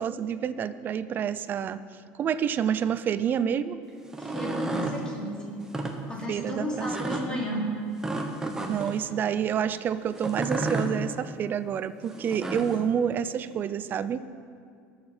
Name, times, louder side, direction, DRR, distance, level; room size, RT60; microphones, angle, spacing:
voice 1, 0.0-1.8 2.1-3.8 6.3-7.4 8.7-14.2, right 8 dB, 35° right, 13 dB, 0.5 m, -28 dB
sound 1, 4.0-5.0 5.6-5.9 6.8-7.2 8.0-9.0 10.2-10.9 12.1-12.8, right 2 dB, 10° right, 1.0 m, -31 dB
voice 2, 4.2-5.6 6.1-7.8, equal, 15° left, -4 dB, 3.0 m, -33 dB
19.0 x 6.8 x 4.4 m, 2.3 s
cardioid pair, 125°, 5 cm